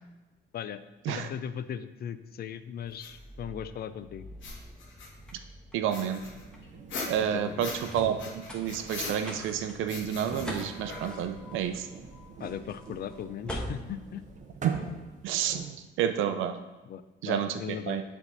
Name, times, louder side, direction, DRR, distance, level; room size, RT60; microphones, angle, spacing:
voice 1, 1.1-4.2 7.2-7.7 12.4-14.2 16.8-18.0, left 9 dB, 50° left, 13 dB, 0.4 m, -38 dB
sound 1, 2.8-15.1, equal, 5° left, 1.2 m, -45 dB
sound 2, 3.0-3.1 4.3-5.3 5.9-7.9 8.2-9.5 9.9-11.4, left 3 dB, 75° left, 1.3 m, -40 dB
voice 2, 5.7-6.2 7.1-8.2 8.5-11.9 14.6-14.8 15.2-16.6 17.2-18.0, right 9 dB, 90° right, 9 dB, 0.5 m, -30 dB
sound 3, 6.2-15.6, right 4 dB, 40° right, 0.7 m, -46 dB
7.1 x 3.5 x 4.1 m, 1.1 s
cardioid pair, 90°, 20 cm